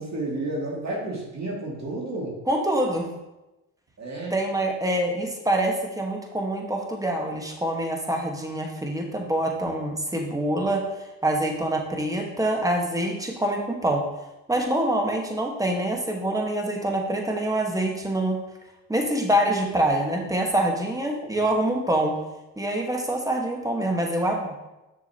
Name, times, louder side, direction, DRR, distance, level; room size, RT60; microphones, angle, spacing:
voice 1, 0.0-2.4 4.0-4.3, right 2 dB, 40° right, -3 dB, 2.5 m, -31 dB
voice 2, 2.5-3.1 4.3-10.8 11.2-14.0 14.5-18.4 18.9-22.1 22.6-24.6, right 1 dB, 10° right, 1 dB, 1.6 m, -25 dB
6.9 x 6.3 x 3.0 m, 0.99 s
hypercardioid pair, 65°, 41 cm